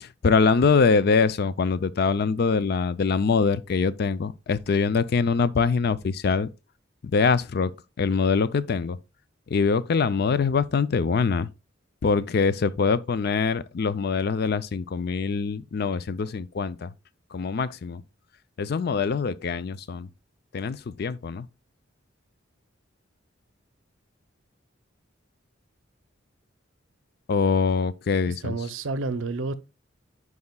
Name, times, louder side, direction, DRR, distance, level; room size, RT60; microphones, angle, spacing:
voice 1, 0.0-6.5 7.0-7.7 8.0-9.0 9.5-11.5 12.0-16.9 17.3-18.0 18.6-20.1 20.5-21.5 27.3-28.6, left 5 dB, 50° left, 0.4 m, -24 dB
voice 2, 28.3-29.5, right 3 dB, 75° right, 0.6 m, -30 dB
9.5 x 4.9 x 2.2 m
head